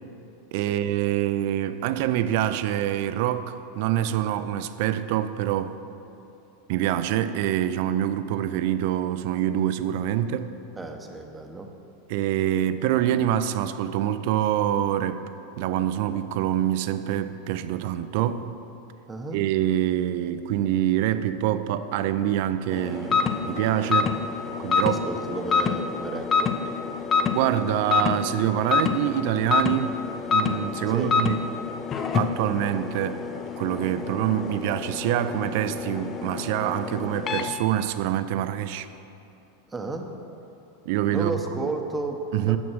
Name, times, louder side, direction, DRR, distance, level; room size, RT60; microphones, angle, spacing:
voice 1, 0.5-5.8 6.7-10.5 12.1-15.3 15.6-18.5 19.3-24.1 24.6-25.0 27.3-30.0 30.3-31.4 32.1-33.3 33.6-38.9 40.9-41.7 42.3-42.6, right 11 dB, 60° right, 0.4 m, -25 dB
voice 2, 10.8-11.7 19.1-19.4 24.8-26.6 30.9-31.2 39.7-40.1 41.1-42.6, right 3 dB, 15° right, 0.8 m, -32 dB
sound 1, 22.7-37.5, left 5 dB, 30° left, 0.5 m, -27 dB
6.1 x 6.1 x 6.2 m
hypercardioid pair, 95°, 0 cm